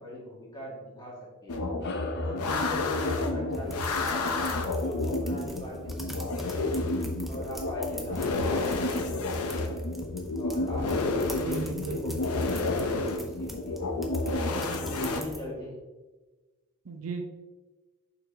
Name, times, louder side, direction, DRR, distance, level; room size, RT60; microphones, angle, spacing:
voice 1, 0.0-1.6 2.2-4.2 4.6-6.9 7.3-9.8 10.4-13.8 14.3-15.8, left 1 dB, 20° left, -5 dB, 2.0 m, -40 dB
sound 1, 1.5-15.2, left 2 dB, 90° left, 0.7 m, -30 dB
sound 2, 1.8-6.6, left 2 dB, 50° left, 0.5 m, -43 dB
sound 3, 3.5-15.4, equal, ahead, 0.5 m, -45 dB
voice 2, 11.2-12.2 16.9-17.2, right 3 dB, 75° right, 5 dB, 0.7 m, -36 dB
7.0 x 5.5 x 2.8 m, 1.2 s
head